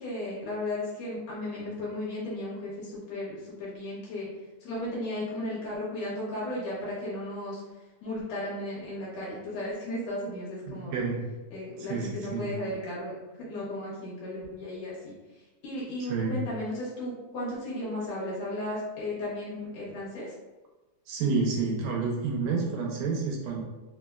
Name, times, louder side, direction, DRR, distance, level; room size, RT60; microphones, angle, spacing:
voice 1, 0.0-4.3 4.6-7.6 8.0-11.0 11.5-15.1 15.6-20.3, left 1 dB, 70° left, -7 dB, 2.0 m, -35 dB
voice 2, 10.7-11.2 11.8-12.5 16.0-16.3 21.1-23.6, right 4 dB, 85° right, -1 dB, 2.0 m, -29 dB
4.7 x 2.0 x 2.2 m, 1.1 s
omnidirectional pair, 3.4 m